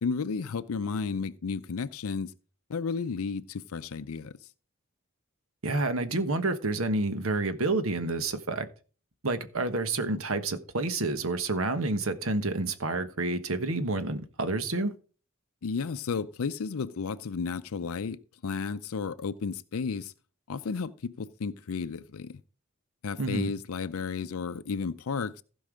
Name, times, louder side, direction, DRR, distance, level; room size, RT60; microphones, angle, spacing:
voice 1, 0.0-2.3 2.7-4.3 15.6-20.1 20.5-22.4 23.0-25.4, left 5 dB, 80° left, 0.5 m, -33 dB
voice 2, 5.6-8.6 9.2-14.9 23.2-23.5, right 2 dB, 75° right, 1.2 m, -29 dB
15.5 x 5.4 x 5.0 m
head